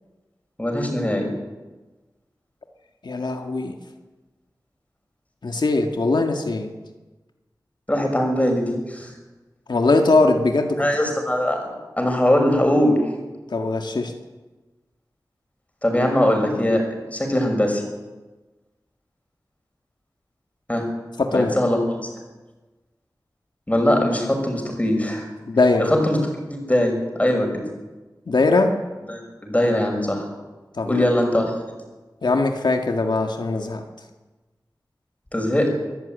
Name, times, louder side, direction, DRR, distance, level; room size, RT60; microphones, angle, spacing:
voice 1, 0.6-1.3 7.9-9.1 10.8-11.6 12.0-13.0 15.8-17.8 20.7-20.9 21.3-22.0 23.7-25.3 25.8-27.5 29.1-30.3 30.8-31.6 35.3-35.7, left 1 dB, 20° left, 3 dB, 6.3 m, -21 dB
voice 2, 3.0-3.7 5.4-6.7 9.7-10.9 13.5-14.1 21.2-21.5 25.5-25.9 28.3-28.8 30.8-31.1 32.2-33.8, left 3 dB, 85° left, 4 dB, 1.9 m, -20 dB
23.5 x 14.0 x 9.2 m, 1.2 s
wide cardioid pair, 80°, 7 cm